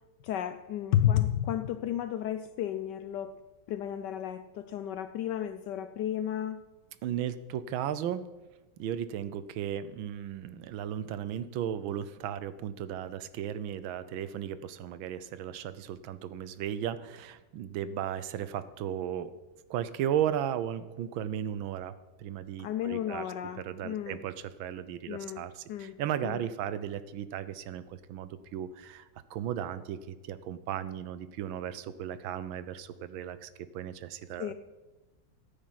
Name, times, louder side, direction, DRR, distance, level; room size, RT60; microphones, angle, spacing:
voice 1, 0.2-3.4 3.7-6.6 22.6-24.3 25.1-25.4 25.7-26.0 26.2-26.4 34.4-34.5, left 11 dB, 75° left, 11 dB, 1.0 m, -32 dB
voice 2, 7.0-8.2 8.8-19.3 19.7-21.9 22.2-23.3 23.6-34.5, right 10 dB, 80° right, 14 dB, 1.5 m, -35 dB
13.5 x 8.9 x 5.7 m, 1.1 s
omnidirectional pair, 2.2 m